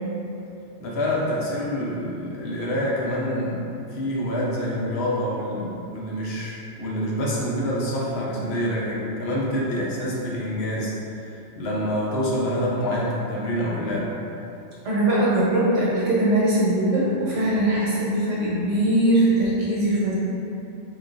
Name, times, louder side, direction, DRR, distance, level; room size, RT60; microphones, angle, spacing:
voice 1, 0.8-10.9 11.2-14.2, equal, 65° left, -5 dB, 0.8 m, -26 dB
voice 2, 14.8-20.1, right 1 dB, 85° right, -8 dB, 1.2 m, -21 dB
3.9 x 2.3 x 2.4 m, 2.8 s
omnidirectional pair, 1.2 m